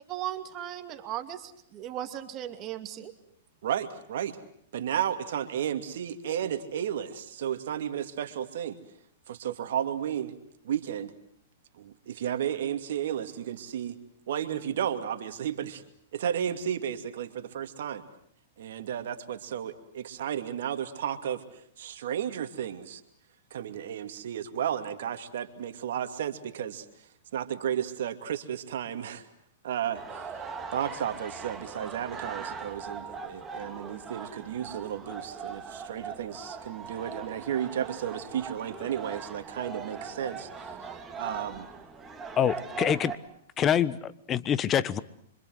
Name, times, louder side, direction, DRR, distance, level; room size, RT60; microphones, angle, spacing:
voice 1, 0.1-3.1, right 12 dB, 35° right, 8 dB, 2.5 m, -37 dB
voice 2, 3.6-4.4 4.7-8.8 9.3-10.3 10.6-11.1 11.8-14.0 14.3-15.8 16.1-18.0 18.6-21.4 21.8-23.0 23.5-26.9 27.3-29.3 29.6-30.3 30.7-40.7 41.2-41.7, right 9 dB, 70° right, 8 dB, 2.5 m, -33 dB
sound 1, 29.9-43.2, right 5 dB, 15° right, 3.1 m, -40 dB
voice 3, 42.4-43.2 43.6-45.0, left 9 dB, 25° left, 17 dB, 1.2 m, -26 dB
27.0 x 25.5 x 8.0 m, 0.66 s
hypercardioid pair, 120°, 0 cm